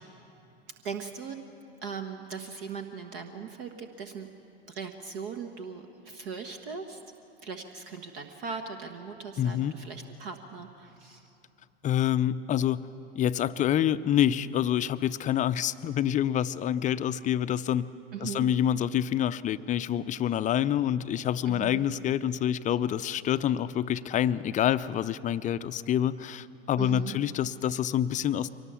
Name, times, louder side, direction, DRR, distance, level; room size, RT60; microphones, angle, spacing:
voice 1, 0.8-1.4 1.8-4.3 4.7-7.0 7.4-11.3 18.1-18.5 21.4-21.8 26.8-27.2, right 6 dB, 60° right, 6 dB, 1.3 m, -39 dB
voice 2, 9.4-9.7 11.8-12.9 13.1-17.9 18.2-28.5, left 10 dB, 25° left, 14 dB, 0.5 m, -27 dB
23.5 x 19.0 x 6.9 m, 2.7 s
figure-of-eight pair, 85°, 32 cm